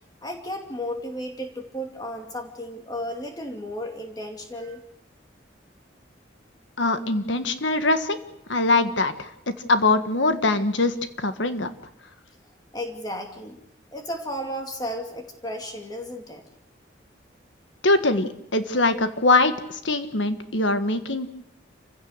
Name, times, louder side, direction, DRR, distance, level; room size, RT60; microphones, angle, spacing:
voice 1, 0.2-4.8 12.7-13.6 13.9-16.4, equal, 20° left, 3 dB, 2.5 m, -34 dB
voice 2, 6.8-8.2 8.5-11.7 17.8-21.3, left 2 dB, 80° left, 10 dB, 1.5 m, -22 dB
28.0 x 16.0 x 6.6 m, 0.82 s
head